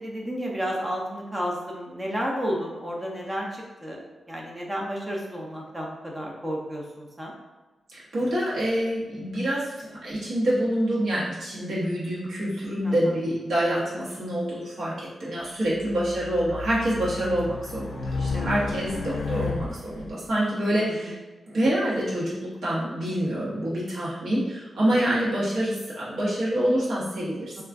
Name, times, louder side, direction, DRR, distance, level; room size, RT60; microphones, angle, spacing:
voice 1, 0.0-7.3 12.8-13.2 18.3-18.6 20.9-21.2 27.6-27.7, equal, 15° right, -2 dB, 0.5 m, -32 dB
voice 2, 7.9-21.1 21.5-27.6, right 1 dB, 70° right, -8 dB, 0.9 m, -26 dB
Race car auto racing, 15.7-20.1, left 4 dB, 80° left, 0.3 m, -32 dB
2.4 x 2.3 x 3.4 m, 1.2 s
wide cardioid pair, 155°, 0 cm